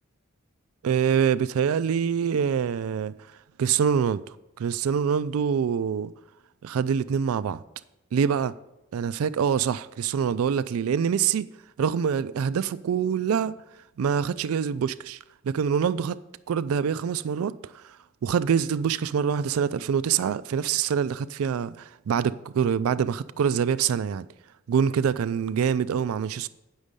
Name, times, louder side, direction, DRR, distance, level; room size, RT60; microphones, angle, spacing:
voice 1, 0.8-3.1 3.6-4.2 4.6-6.1 6.6-7.6 8.1-8.5 8.9-11.5 11.8-13.6 14.0-15.2 15.4-16.2 16.5-17.9 18.2-24.3 24.7-26.5, right 7 dB, 85° right, 0.3 m, -25 dB
9.7 x 6.3 x 5.2 m
head